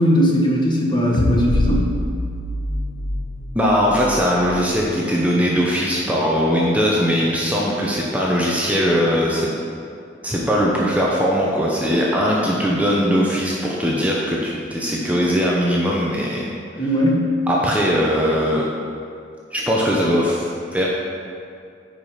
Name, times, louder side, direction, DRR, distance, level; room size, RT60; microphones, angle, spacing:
voice 1, 0.0-1.9 16.8-17.2, equal, 25° left, -2 dB, 1.3 m, -18 dB
sound 1, 1.1-4.6, left 1 dB, 65° left, 0.8 m, -25 dB
voice 2, 3.5-9.5 10.2-16.5 17.5-18.6 19.5-20.9, equal, 10° right, -4 dB, 0.8 m, -20 dB
9.4 x 5.0 x 5.6 m, 2.3 s
head